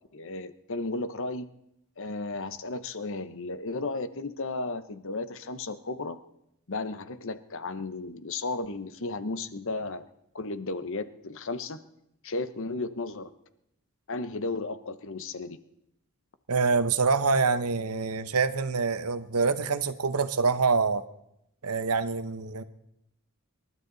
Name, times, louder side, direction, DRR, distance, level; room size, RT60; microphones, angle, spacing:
voice 1, 0.1-1.5 2.0-6.2 6.7-10.0 10.3-11.8 12.2-13.3 14.1-15.6, left 3 dB, 60° left, 12 dB, 1.0 m, -34 dB
voice 2, 16.5-21.0 21.6-22.6, right 4 dB, 85° right, 12 dB, 1.0 m, -26 dB
27.5 x 12.5 x 4.0 m, 0.80 s
head